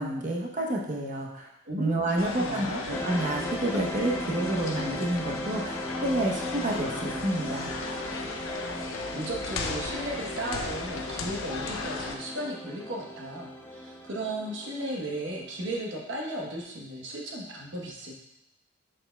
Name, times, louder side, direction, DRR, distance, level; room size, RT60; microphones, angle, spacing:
voice 1, 0.0-1.5 1.8-7.7, right 1 dB, 40° right, -1 dB, 0.9 m, -29 dB
voice 2, 1.7-2.8 9.1-18.1, right 1 dB, 60° right, -1 dB, 1.1 m, -35 dB
sound 1, 2.2-12.2, left 3 dB, 80° left, 0.6 m, -36 dB
sound 2, 2.9-15.9, left 1 dB, 10° left, 0.4 m, -37 dB
6.6 x 6.2 x 2.3 m, 0.88 s
head